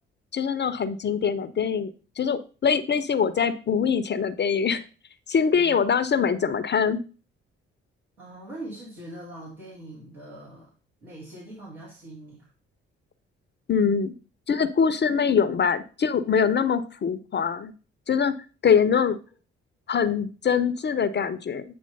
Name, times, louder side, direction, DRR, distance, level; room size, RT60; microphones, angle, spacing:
voice 1, 0.3-4.8 5.3-7.0 13.7-14.1 14.5-17.7 18.1-18.4 18.6-19.2 19.9-21.6, left 6 dB, 35° left, 12 dB, 0.6 m, -23 dB
voice 2, 5.5-5.9 8.2-10.7 11.0-12.5, right 1 dB, 80° right, -9 dB, 2.4 m, -42 dB
8.6 x 3.1 x 5.3 m, 0.37 s
figure-of-eight pair, 40°, 33 cm